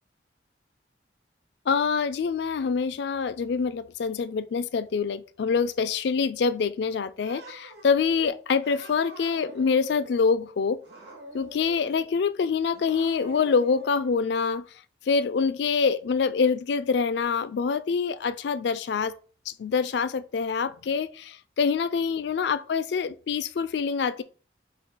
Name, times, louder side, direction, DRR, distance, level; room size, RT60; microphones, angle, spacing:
voice 1, 1.7-10.8 11.3-14.7 15.1-19.1 19.5-24.2, left 5 dB, 65° left, 0.4 m, -25 dB
Cat, 7.2-7.9 8.6-10.3 10.8-12.1 12.7-14.2, right 2 dB, 70° right, 1.7 m, -45 dB
5.6 x 2.3 x 3.9 m
head